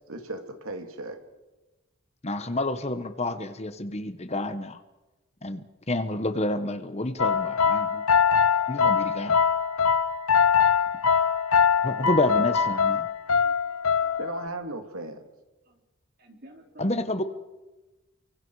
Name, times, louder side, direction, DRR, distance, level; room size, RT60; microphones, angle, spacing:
voice 1, 0.1-1.2 14.2-15.2, right 2 dB, 75° right, 5 dB, 2.6 m, -36 dB
voice 2, 2.2-4.8 5.4-8.0 8.7-9.4 11.8-13.1 16.8-17.2, left 2 dB, 30° left, 10 dB, 1.1 m, -29 dB
sound 1, 7.2-14.5, left 6 dB, 80° left, 1.0 m, -23 dB
voice 3, 13.3-14.2 15.7-15.8 16.2-16.9, right 1 dB, 45° right, 3 dB, 3.7 m, -52 dB
29.5 x 24.5 x 4.9 m, 1.1 s
head